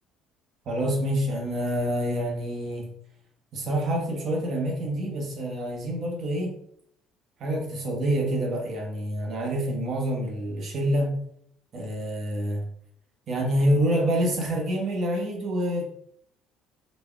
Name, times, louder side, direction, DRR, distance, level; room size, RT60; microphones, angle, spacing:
voice 1, 0.6-2.9 3.5-6.5 7.4-11.2 11.7-12.7 13.3-15.8, equal, 45° right, 0 dB, 1.2 m, -27 dB
4.2 x 2.6 x 3.5 m, 0.69 s
cardioid pair, 140°, 0 cm